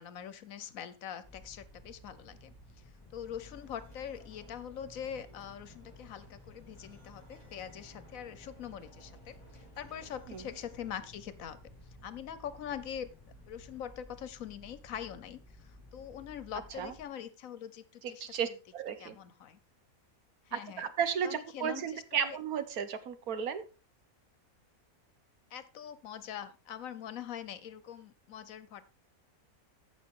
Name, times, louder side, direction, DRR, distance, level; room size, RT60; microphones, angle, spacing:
voice 1, 0.0-2.5 3.1-11.6 12.0-13.1 13.5-18.3 19.0-19.6 20.5-20.9 21.2-22.4 25.5-28.9, left 9 dB, 70° left, 14 dB, 1.3 m, -43 dB
sound 1, 1.2-17.0, left 1 dB, 15° left, 2.2 m, -55 dB
sound 2, 2.8-11.1, equal, 25° right, 4.9 m, -62 dB
voice 2, 18.0-19.2 20.5-23.6, right 7 dB, 80° right, 11 dB, 1.5 m, -34 dB
14.5 x 5.8 x 3.8 m, 0.33 s
omnidirectional pair, 1.5 m